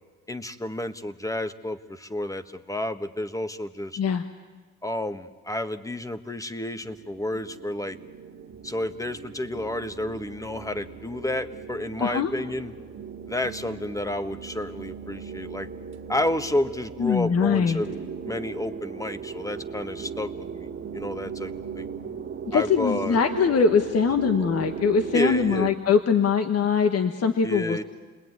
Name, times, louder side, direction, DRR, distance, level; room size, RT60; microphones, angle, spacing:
voice 1, 0.3-4.0 4.8-8.0 8.6-12.7 13.3-15.7 16.1-18.0 18.2-21.9 22.5-23.2 25.1-25.7 27.4-27.8, left 1 dB, 10° left, 10 dB, 1.4 m, -30 dB
sound 1, 6.8-25.7, right 6 dB, 45° right, 2.2 m, -38 dB
voice 2, 12.0-12.3 17.0-17.8 22.5-27.8, left 6 dB, 55° left, 7 dB, 1.4 m, -22 dB
29.0 x 20.5 x 9.6 m, 1.4 s
cardioid pair, 90°, 30 cm